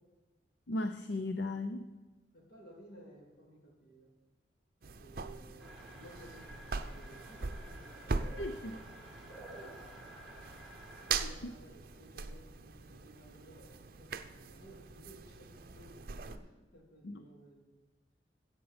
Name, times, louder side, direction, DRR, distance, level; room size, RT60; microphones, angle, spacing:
voice 1, 0.7-1.9 8.4-8.8 11.2-11.5 17.0-17.2, left 2 dB, 70° left, 9 dB, 0.6 m, -37 dB
voice 2, 2.3-4.1 5.0-8.2 9.5-9.8 11.2-16.0 16.2-17.8, right 1 dB, 55° left, -1 dB, 3.3 m, -57 dB
sound 1, 4.8-16.4, right 4 dB, 55° right, 0.6 m, -42 dB
sound 2, 5.6-11.2, right 1 dB, ahead, 2.3 m, -52 dB
14.0 x 8.4 x 5.0 m, 1.2 s
head